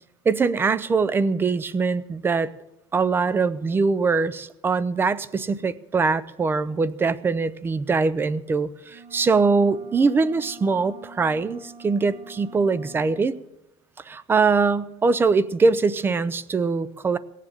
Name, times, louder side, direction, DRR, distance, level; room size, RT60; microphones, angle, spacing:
voice 1, 0.3-2.5 2.9-13.3 14.1-17.2, right 4 dB, 15° right, 18 dB, 0.4 m, -22 dB
sound 1, 8.9-13.3, right 4 dB, 30° right, 0.9 m, -46 dB
18.0 x 7.4 x 9.1 m, 0.93 s
cardioid pair, 170°, 15 cm